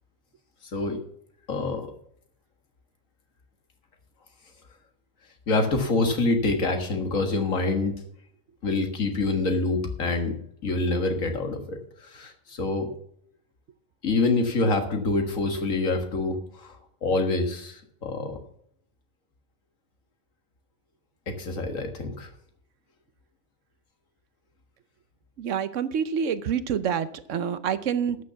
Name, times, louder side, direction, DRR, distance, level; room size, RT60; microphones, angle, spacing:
voice 1, 1.5-1.9 5.5-8.0 8.6-10.3 10.6-12.9 14.0-18.4 21.3-22.3, left 3 dB, 75° left, 5 dB, 2.0 m, -26 dB
voice 2, 25.4-28.2, right 8 dB, 70° right, 14 dB, 1.0 m, -27 dB
12.0 x 6.7 x 7.0 m, 0.69 s
omnidirectional pair, 1.4 m